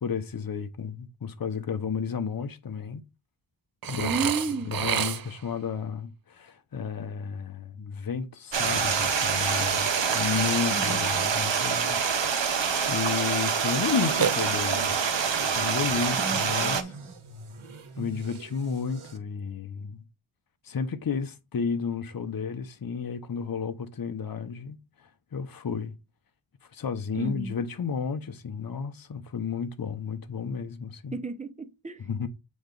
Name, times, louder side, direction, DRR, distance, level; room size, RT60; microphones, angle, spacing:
voice 1, 0.0-3.0 3.8-4.3 4.7-12.0 12.8-15.0 15.5-16.9 18.0-20.0 20.6-24.8 25.3-25.9 26.7-31.2 32.0-32.3, left 6 dB, 45° left, 0.8 m, -32 dB
Burping eructation, 3.8-5.5 14.2-15.0, right 9 dB, 50° right, 0.5 m, -30 dB
voice 2, 4.0-4.8 10.7-11.3 16.2-16.9 27.1-27.6 31.1-32.0, right 3 dB, 15° right, 0.8 m, -33 dB
Stream, 8.5-16.8, right 6 dB, 65° right, 1.0 m, -26 dB
sound 1, 13.7-19.2, right 4 dB, 85° right, 1.1 m, -44 dB
7.8 x 3.1 x 3.8 m
cardioid pair, 55°, 48 cm